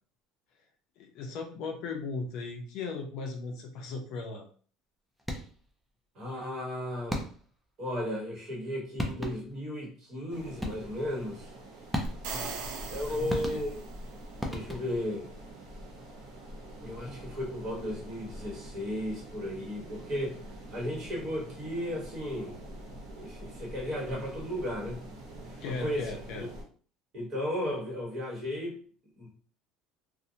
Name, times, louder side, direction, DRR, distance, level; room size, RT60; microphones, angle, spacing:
voice 1, 1.0-4.5 12.3-13.6 25.6-26.5, left 4 dB, 50° left, 0.5 m, -38 dB
sound 1, 5.2-5.7 7.1-7.6 8.6-8.7 9.0-9.6 10.6-11.1 11.9-12.5 13.3-14.0 14.4-15.1, equal, ahead, 0.3 m, -35 dB
voice 2, 6.1-7.2 7.8-11.5 12.9-13.8 14.5-15.3 16.8-20.4 20.7-22.6 23.1-25.0 25.5-26.1 26.4-26.5 27.1-28.8 29.2-29.4, left 1 dB, 30° right, 1.0 m, -35 dB
sound 2, 10.3-26.6, right 1 dB, 60° right, 0.9 m, -46 dB
sound 3, 12.0-14.1, right 5 dB, 85° right, 0.5 m, -39 dB
2.6 x 2.0 x 2.7 m
cardioid pair, 180°, 0 cm